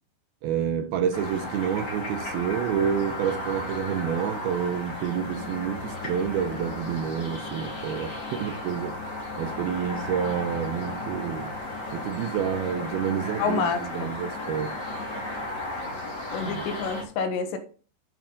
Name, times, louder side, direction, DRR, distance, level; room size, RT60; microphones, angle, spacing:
voice 1, 0.4-9.0 9.4-11.6 11.9-14.8 16.4-16.7, right 8 dB, 80° right, 2.2 m, -29 dB
sound 1, 1.1-17.0, left 1 dB, 25° left, 2.9 m, -35 dB
sound 2, 5.1-15.5, left 7 dB, 60° left, 2.8 m, -44 dB
voice 2, 13.4-14.1 16.3-17.6, left 5 dB, 75° left, 3.5 m, -28 dB
12.0 x 8.0 x 3.9 m
omnidirectional pair, 5.2 m